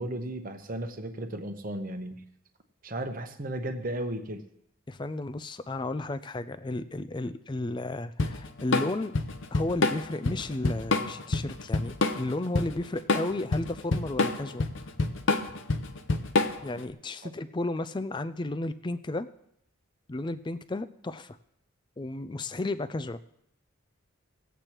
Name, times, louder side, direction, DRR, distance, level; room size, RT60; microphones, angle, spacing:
voice 1, 0.0-2.2 2.8-4.4 17.2-17.3, right 1 dB, 40° right, 6 dB, 0.9 m, -35 dB
voice 2, 4.9-9.2 9.5-14.7 16.6-19.3 20.1-21.4 22.0-23.2, left 2 dB, 20° left, 12 dB, 0.4 m, -33 dB
Drum kit / Drum, 8.2-16.8, left 3 dB, 60° left, 0.7 m, -27 dB
19.5 x 8.2 x 3.0 m, 0.74 s
head